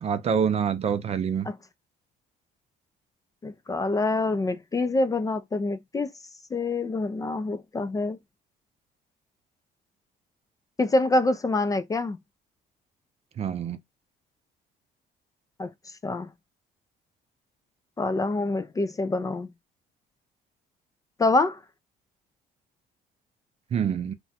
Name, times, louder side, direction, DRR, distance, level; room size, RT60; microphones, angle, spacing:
voice 1, 0.0-1.5 13.4-13.8 23.7-24.1, right 7 dB, 40° right, 0.5 m, -26 dB
voice 2, 3.4-6.1 6.5-8.2 10.8-12.2 15.6-15.7 16.0-16.3 18.0-19.5 21.2-21.6, left 2 dB, 20° left, 0.4 m, -26 dB
2.5 x 2.2 x 4.0 m
cardioid pair, 110°, 17 cm